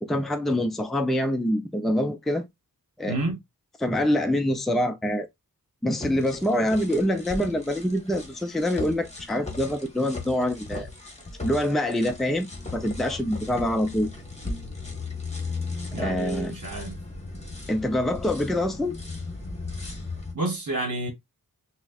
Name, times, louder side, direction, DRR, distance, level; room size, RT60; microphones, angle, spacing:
voice 1, 0.0-2.5 3.0-3.2 3.8-5.3 5.8-10.9 11.4-12.5 12.7-14.1 15.9-16.5 17.7-19.0, left 1 dB, ahead, 0.5 m, -25 dB
voice 2, 3.1-3.4 15.9-17.0 20.3-21.1, right 2 dB, 60° right, 1.1 m, -29 dB
sound 1, 6.0-20.3, left 3 dB, 20° left, 1.2 m, -37 dB
6.0 x 2.1 x 2.3 m
wide cardioid pair, 75°, 35 cm